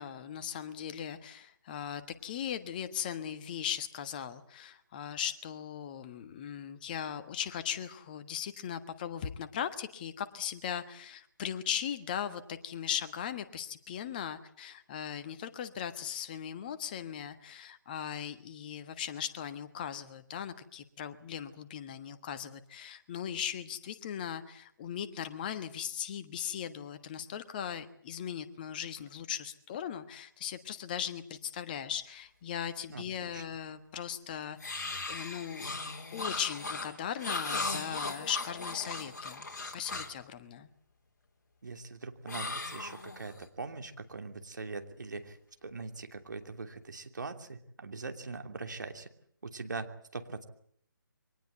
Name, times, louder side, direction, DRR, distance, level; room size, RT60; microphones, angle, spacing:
voice 1, 0.0-35.7 36.1-39.5 39.7-40.7, left 9 dB, 25° left, 11 dB, 1.4 m, -38 dB
voice 2, 32.9-33.4 41.6-49.1 49.4-50.4, right 3 dB, 60° right, 6 dB, 3.0 m, -42 dB
sound 1, 34.6-40.2 42.3-43.4, left 3 dB, 50° left, 4.0 m, -38 dB
24.0 x 19.0 x 8.1 m, 0.65 s
figure-of-eight pair, 145°, 11 cm